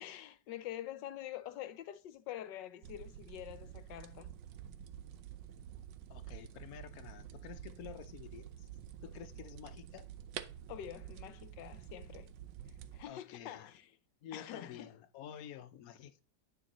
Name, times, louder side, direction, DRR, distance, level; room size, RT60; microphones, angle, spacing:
voice 1, 0.0-4.4 10.7-12.3 12.9-13.9 14.3-14.9, left 12 dB, 75° left, 1.4 m, -46 dB
sound 1, 2.8-13.0, right 10 dB, 75° right, 1.3 m, -49 dB
voice 2, 6.1-8.7 9.0-10.1 13.1-13.7 14.2-16.2, left 10 dB, 60° left, 1.1 m, -50 dB
9.7 x 6.2 x 3.0 m
omnidirectional pair, 2.0 m